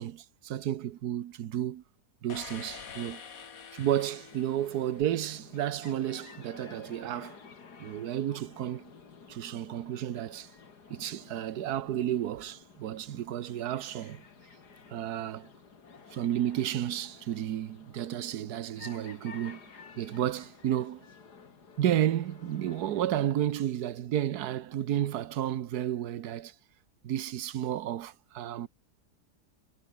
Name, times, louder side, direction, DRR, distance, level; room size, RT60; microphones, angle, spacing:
voice 1, 0.0-1.8 2.2-3.2 3.7-7.4 7.8-8.9 9.3-10.5 10.9-14.2 14.9-15.5 16.1-19.7 20.0-21.1 21.8-26.5 27.0-28.7, right 11 dB, 75° right, 1.4 m, -32 dB
sound 1, 2.3-5.5, left 6 dB, 60° left, 2.0 m, -46 dB
sound 2, 4.1-23.0, left 5 dB, 80° left, 2.9 m, -52 dB
omnidirectional pair, 1.7 m